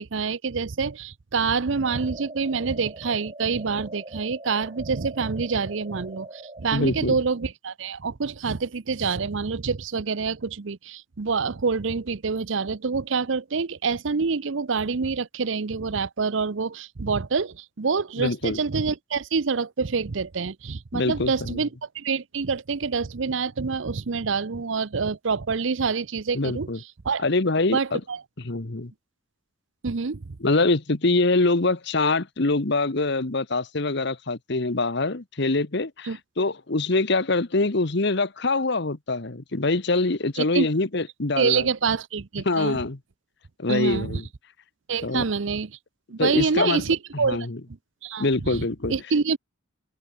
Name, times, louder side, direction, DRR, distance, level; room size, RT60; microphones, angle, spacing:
voice 1, 0.0-26.7 27.0-27.2 27.7-28.2 29.8-30.4 36.0-36.2 40.4-40.7 41.4-42.8 43.7-44.2 44.9-45.7 46.1-47.4 48.0-49.4, right 5 dB, 70° right, 0.7 m, -26 dB
sound 1, 1.7-6.7, right 2 dB, 30° right, 7.9 m, -42 dB
voice 2, 6.7-7.2 18.2-18.6 20.9-21.6 26.3-26.8 27.2-28.0 28.4-28.9 30.4-41.7 42.4-43.0 43.6-44.2 45.0-45.2 46.2-46.8 47.2-47.6 48.2-48.9, left 3 dB, 60° left, 1.2 m, -24 dB
head